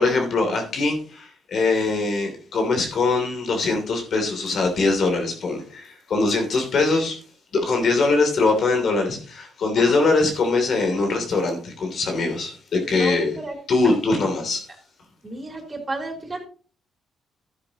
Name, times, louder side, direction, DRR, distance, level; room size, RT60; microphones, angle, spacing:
voice 1, 0.0-7.2 7.5-13.4 13.7-14.6, left 3 dB, 60° left, 2.9 m, -22 dB
voice 2, 12.9-13.5 13.8-13.9 15.2-16.5, right 2 dB, 25° right, 3.4 m, -32 dB
12.0 x 9.7 x 2.9 m
cardioid pair, 90°, 0 cm